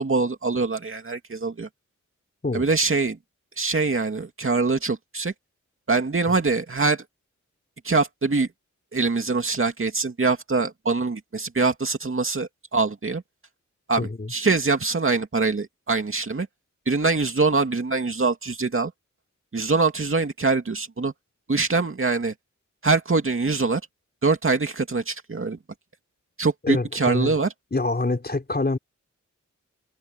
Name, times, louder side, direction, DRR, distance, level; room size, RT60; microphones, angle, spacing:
voice 1, 0.0-1.7 2.5-3.2 3.6-5.3 5.9-7.0 7.8-8.5 8.9-13.2 13.9-16.5 16.9-18.9 19.5-21.1 21.5-22.3 22.8-23.8 24.2-25.6 26.4-27.5, right 3 dB, 45° right, 2.5 m, -23 dB
voice 2, 14.0-14.3 26.6-27.4 27.7-28.8, left 2 dB, 30° left, 4.9 m, -25 dB
wide cardioid pair, 75°, 30 cm